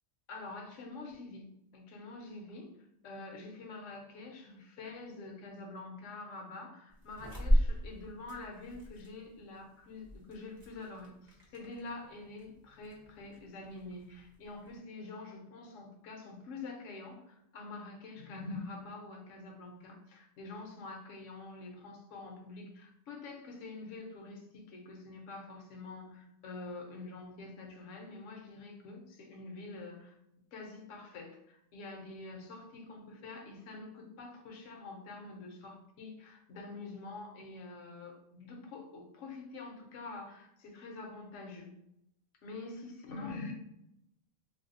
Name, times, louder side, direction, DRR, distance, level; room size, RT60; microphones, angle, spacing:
voice 1, 0.3-2.7 3.0-30.2 30.5-41.7 42.4-43.5, left 3 dB, 70° left, 2 dB, 1.0 m, -46 dB
sound 1, 6.9-14.8, equal, 30° right, 0.4 m, -36 dB
3.4 x 2.7 x 2.5 m, 0.81 s
omnidirectional pair, 1.4 m